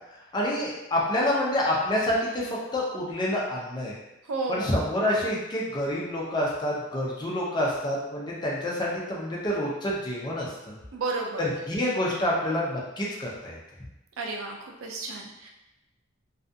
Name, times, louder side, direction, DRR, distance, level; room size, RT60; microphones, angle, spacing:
voice 1, 0.3-4.0 4.5-10.8 11.4-13.6, left 1 dB, 20° left, -4 dB, 0.5 m, -28 dB
voice 2, 4.3-4.7 10.9-11.5 14.2-15.5, right 3 dB, 80° right, 1 dB, 0.4 m, -32 dB
2.4 x 2.3 x 2.6 m, 0.95 s
head